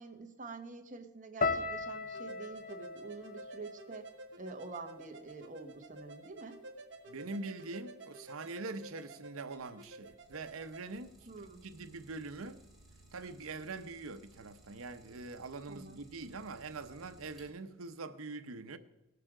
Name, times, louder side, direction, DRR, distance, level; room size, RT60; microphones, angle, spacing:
voice 1, 0.0-4.0 4.4-6.6 11.3-11.6 15.7-16.0, right 3 dB, 40° right, 1.2 m, -47 dB
sound 1, 1.4-5.6 5.9-6.7 7.2-7.5, left 3 dB, 40° left, 0.7 m, -39 dB
sound 2, 2.1-10.8, right 2 dB, 60° right, 1.3 m, -51 dB
voice 2, 7.1-11.2 11.6-12.6 13.1-18.8, right 3 dB, 85° right, 0.8 m, -43 dB
Idling, 9.8-17.9, right 2 dB, ahead, 2.8 m, -61 dB
18.0 x 6.8 x 4.9 m
head